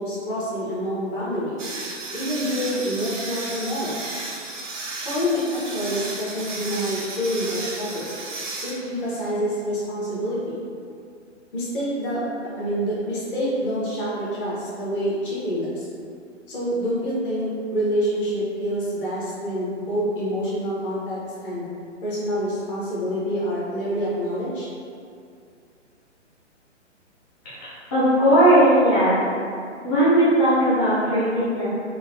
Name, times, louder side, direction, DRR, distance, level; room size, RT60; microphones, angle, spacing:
voice 1, 0.0-1.6 2.1-4.0 5.0-8.1 8.6-10.6 11.5-15.9 16.5-21.7 22.0-24.7, equal, 45° left, -8 dB, 1.2 m, -27 dB
sound 1, 1.6-9.3, right 3 dB, 80° right, 0.8 m, -34 dB
voice 2, 27.4-29.2 29.8-31.7, right 1 dB, 20° left, -13 dB, 0.5 m, -18 dB
3.7 x 2.2 x 2.6 m, 2.4 s
figure-of-eight pair, 135°, 37 cm